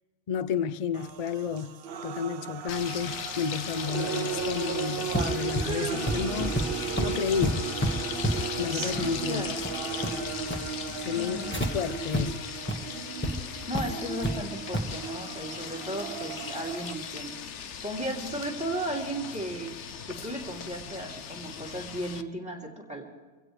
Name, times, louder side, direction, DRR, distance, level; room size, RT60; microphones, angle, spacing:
voice 1, 0.3-1.8 2.0-6.6 7.0-7.6 8.6-9.5 11.0-12.5, left 7 dB, 55° left, 0.4 m, -31 dB
sound 1, 0.9-16.9, right 7 dB, 60° right, 0.8 m, -36 dB
sound 2, 2.7-22.2, left 7 dB, 80° left, 1.1 m, -38 dB
sound 3, 5.1-11.7 12.1-12.2 12.6-12.7 13.2-13.3 13.7-14.4 14.7-14.9, equal, 10° left, 1.3 m, -31 dB
voice 2, 11.1-11.5 13.7-17.3 17.8-19.7 20.1-23.0, right 1 dB, 5° right, 2.8 m, -35 dB
25.0 x 16.5 x 3.3 m
omnidirectional pair, 1.2 m